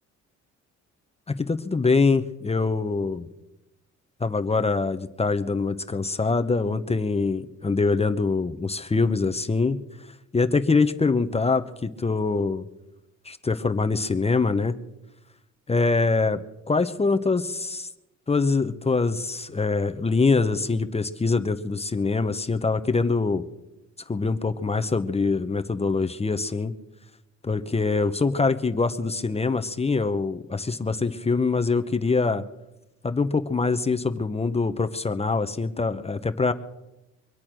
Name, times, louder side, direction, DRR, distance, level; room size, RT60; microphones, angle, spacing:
voice 1, 1.3-3.3 4.2-9.8 10.3-12.7 13.2-14.8 15.7-17.9 18.3-23.4 24.1-26.7 27.4-32.4 33.0-36.5, left 4 dB, 20° left, 9 dB, 0.9 m, -24 dB
24.0 x 8.5 x 6.2 m, 0.95 s
cardioid pair, 90°, 30 cm